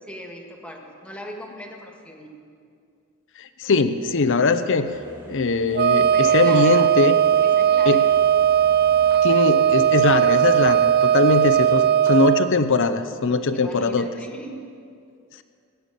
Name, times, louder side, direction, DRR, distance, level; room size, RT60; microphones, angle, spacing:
voice 1, 0.0-2.4 6.1-6.9 7.4-8.1 13.5-14.6, equal, 5° left, 1 dB, 1.7 m, -38 dB
voice 2, 3.4-4.9 5.3-7.2 7.9-8.1 9.2-14.1, left 3 dB, 60° left, 11 dB, 0.7 m, -21 dB
sound 1, 4.8-11.9, equal, 20° right, 2.6 m, -45 dB
Wind instrument woodwind instrument, 5.7-12.5, right 9 dB, 50° right, 0.4 m, -18 dB
19.5 x 6.9 x 9.1 m, 2.4 s
head